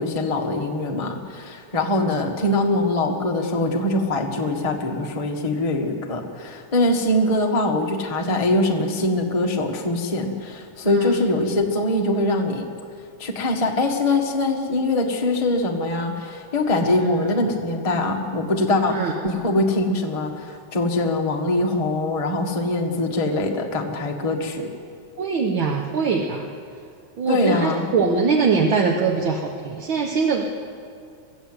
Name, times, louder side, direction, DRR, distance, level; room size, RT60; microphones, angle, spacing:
voice 1, 0.0-12.7 13.2-24.7 27.3-27.8, left 2 dB, 20° left, 1 dB, 1.0 m, -23 dB
voice 2, 10.8-11.2 17.0-17.3 18.9-19.1 25.2-26.5 27.2-30.4, right 5 dB, 50° right, 0 dB, 1.7 m, -22 dB
23.5 x 15.0 x 8.0 m, 2.3 s
omnidirectional pair, 3.3 m